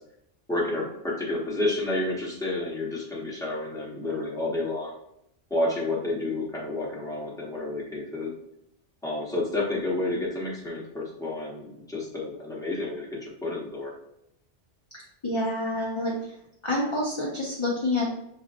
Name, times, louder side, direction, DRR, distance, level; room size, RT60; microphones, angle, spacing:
voice 1, 0.5-4.9 5.5-8.3 9.0-13.9, left 2 dB, 5° left, -4 dB, 1.0 m, -30 dB
voice 2, 14.9-16.1 16.6-18.1, left 1 dB, 30° left, -3 dB, 0.7 m, -28 dB
6.4 x 2.9 x 2.5 m, 0.79 s
omnidirectional pair, 1.1 m